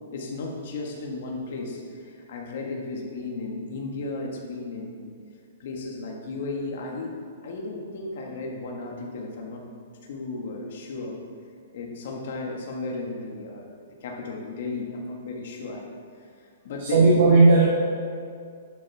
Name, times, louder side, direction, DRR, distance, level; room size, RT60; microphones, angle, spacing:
voice 1, 0.1-5.0 5.6-7.1 7.4-9.7 10.1-11.2 11.7-15.9 16.6-17.1, left 3 dB, 55° left, -1 dB, 1.7 m, -34 dB
voice 2, 16.8-17.7, right 3 dB, 55° right, -4 dB, 1.6 m, -16 dB
11.5 x 7.3 x 3.6 m, 2.2 s
hypercardioid pair, 165°, 0 cm